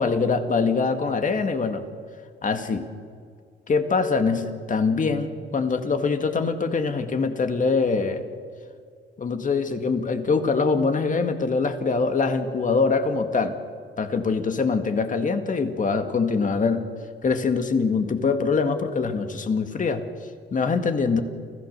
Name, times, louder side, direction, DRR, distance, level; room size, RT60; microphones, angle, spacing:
voice 1, 0.0-1.8 2.4-2.9 3.7-8.2 9.2-13.6 14.0-16.9 17.2-20.1 20.5-21.2, left 4 dB, 40° left, 7 dB, 2.1 m, -23 dB
29.5 x 15.0 x 6.8 m, 2.1 s
cardioid pair, 90°, 20 cm